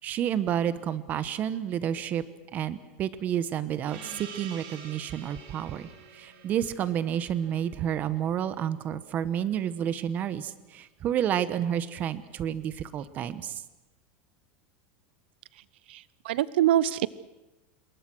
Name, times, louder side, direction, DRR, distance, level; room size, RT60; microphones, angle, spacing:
voice 1, 0.0-2.2 2.5-13.6, right 9 dB, 30° right, 14 dB, 1.2 m, -30 dB
Gong, 3.9-8.9, right 5 dB, 60° right, 5.4 m, -47 dB
voice 2, 15.9-17.1, right 12 dB, 85° right, 19 dB, 0.7 m, -25 dB
27.5 x 22.0 x 6.3 m, 1.0 s
supercardioid pair, 160°, 6 cm